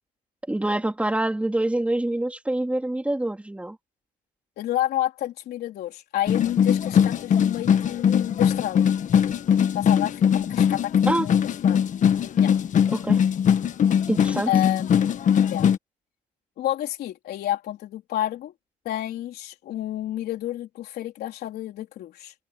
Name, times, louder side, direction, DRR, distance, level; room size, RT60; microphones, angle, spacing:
voice 1, 0.5-3.8 11.1-11.3 12.9-13.2 14.1-14.5, right 1 dB, 10° right, 4.1 m, -25 dB
voice 2, 4.6-8.9 9.7-11.9 12.4-12.5 14.5-14.9 15.4-15.7 16.6-18.5 18.8-22.3, left 13 dB, 70° left, 4.1 m, -30 dB
sound 1, 6.3-15.8, left 8 dB, 50° left, 1.4 m, -21 dB
cardioid pair, 110°, 17 cm